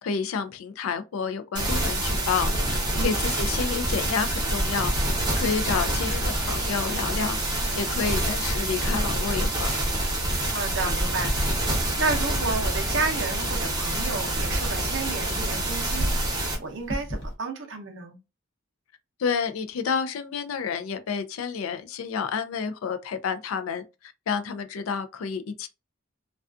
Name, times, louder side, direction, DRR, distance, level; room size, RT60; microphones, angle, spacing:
voice 1, 0.0-4.9 5.4-7.4 7.7-9.7 19.2-25.7, left 6 dB, 70° left, 0.4 m, -29 dB
sound 1, 1.6-16.6, right 1 dB, 20° right, 0.7 m, -26 dB
voice 2, 10.5-11.3 11.6-18.2, right 4 dB, 55° right, 0.6 m, -31 dB
sound 2, 12.2-17.3, equal, 50° left, 0.7 m, -36 dB
2.3 x 2.3 x 2.4 m
head